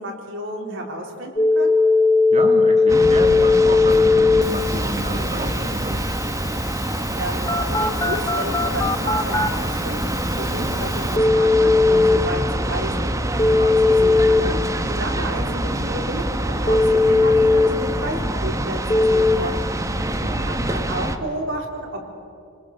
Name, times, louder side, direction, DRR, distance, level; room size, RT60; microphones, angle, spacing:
voice 1, 0.0-1.8 7.2-10.0 10.4-13.1 13.8-14.6 14.8-18.8 19.0-19.6 20.5-22.1, right 1 dB, 65° right, 0 dB, 4.0 m, -31 dB
Telephone, 1.4-12.2 13.4-14.4 16.7-17.7 18.9-19.4, left 3 dB, 15° left, 0.9 m, -19 dB
voice 2, 2.3-6.0 13.5-13.8 19.9-20.7, right 1 dB, 35° right, 2 dB, 2.3 m, -30 dB
sound 1, 2.9-21.2, right 1 dB, 15° right, 1.1 m, -25 dB
30.0 x 20.5 x 6.7 m, 2.7 s
head